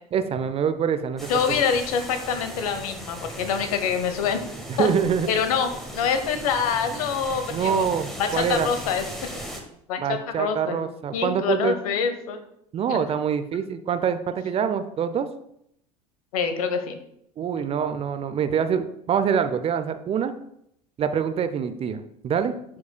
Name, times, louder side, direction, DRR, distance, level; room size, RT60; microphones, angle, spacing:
voice 1, 0.1-1.6 4.7-5.3 7.5-8.7 10.0-11.7 12.7-15.3 17.4-20.3 21.0-22.5, right 7 dB, 30° right, 10 dB, 0.5 m, -25 dB
sound 1, 1.2-9.6, right 1 dB, ahead, 1.5 m, -37 dB
voice 2, 1.3-4.4 4.8-4.9 5.3-7.9 8.2-9.0 9.9-10.8 11.1-12.4 12.9-13.0 16.3-17.0, left 6 dB, 65° left, 8 dB, 0.9 m, -25 dB
11.0 x 4.7 x 2.2 m, 0.74 s
figure-of-eight pair, 70°, 20 cm